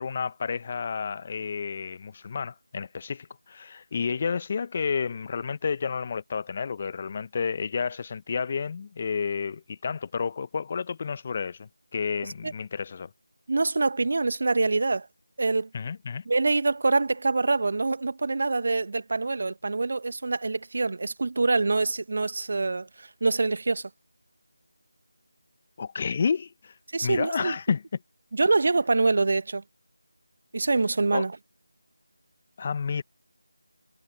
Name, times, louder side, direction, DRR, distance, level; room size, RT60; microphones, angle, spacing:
voice 1, 0.0-13.1 15.7-16.2 25.8-26.7 27.0-27.8 31.1-31.2 32.6-33.0, left 5 dB, 30° left, 1.2 m, -30 dB
voice 2, 13.5-15.1 15.4-15.7 16.3-23.9 26.9-27.5 28.3-29.6 30.5-31.3, right 3 dB, 50° right, 1.4 m, -25 dB
figure-of-eight pair, 165°, 0 cm